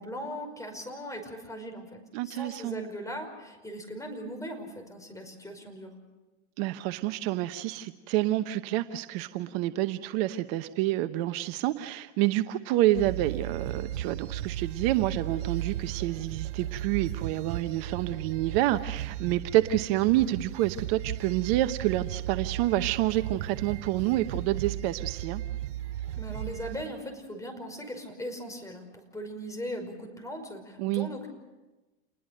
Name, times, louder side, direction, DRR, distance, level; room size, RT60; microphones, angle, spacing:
voice 1, 0.0-5.9 26.1-31.3, equal, 10° left, 4 dB, 5.4 m, -39 dB
voice 2, 2.1-2.8 6.6-25.4 30.8-31.1, right 15 dB, 55° right, 10 dB, 1.0 m, -28 dB
sound 1, 12.9-26.8, right 12 dB, 70° right, 2.7 m, -36 dB
28.5 x 21.0 x 6.6 m, 1.1 s
hypercardioid pair, 110°, 36 cm